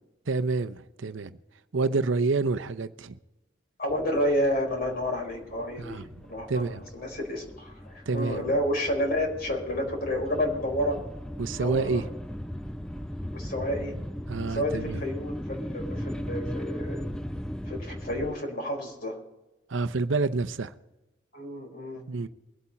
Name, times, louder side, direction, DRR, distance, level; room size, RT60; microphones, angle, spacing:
voice 1, 0.3-1.4 1.7-3.2 5.8-6.8 8.1-8.4 11.4-12.1 14.3-15.0 19.7-20.7 22.1-22.3, right 3 dB, 75° right, 0.7 m, -28 dB
voice 2, 3.8-6.0 6.3-11.0 11.6-12.0 13.3-13.9 14.5-17.0 17.6-19.2 21.3-22.0, left 1 dB, 45° left, 4.5 m, -30 dB
sound 1, 3.9-18.4, equal, 5° left, 0.5 m, -38 dB
23.0 x 8.5 x 4.3 m
head